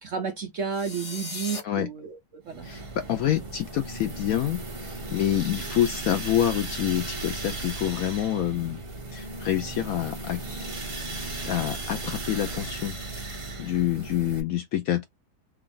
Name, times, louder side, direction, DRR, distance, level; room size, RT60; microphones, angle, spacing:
voice 1, 0.0-2.7, right 6 dB, 65° right, 0.8 m, -32 dB
sound 1, 0.7-1.6, left 3 dB, 35° left, 0.6 m, -36 dB
sound 2, 2.5-14.4, right 2 dB, 45° right, 0.4 m, -36 dB
voice 2, 2.6-8.8 9.1-10.4 11.4-13.3 13.6-15.0, left 11 dB, 70° left, 0.8 m, -27 dB
3.4 x 2.4 x 3.7 m
omnidirectional pair, 1.9 m